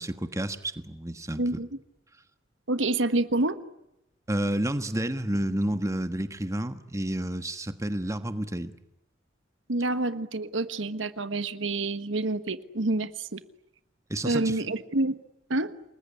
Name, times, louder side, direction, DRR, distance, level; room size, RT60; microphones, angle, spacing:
voice 1, 0.0-1.6 4.3-8.7 14.1-14.6, right 1 dB, 15° right, 10 dB, 1.4 m, -30 dB
voice 2, 2.7-3.6 9.7-13.4 14.2-15.2 15.5-15.7, right 2 dB, 90° right, 12 dB, 1.3 m, -27 dB
29.0 x 21.0 x 9.7 m, 0.88 s
head